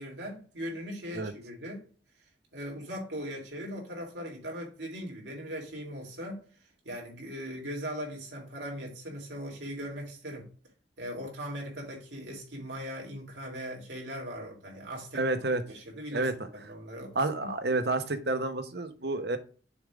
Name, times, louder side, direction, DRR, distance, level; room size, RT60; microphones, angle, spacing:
voice 1, 0.0-1.8 2.5-6.4 6.9-10.5 11.0-15.3 15.7-17.5, equal, 80° right, 3.4 m, -39 dB
voice 2, 15.1-15.6 16.1-16.3 17.1-19.4, right 2 dB, 60° right, 1.0 m, -29 dB
7.0 x 3.7 x 6.2 m
head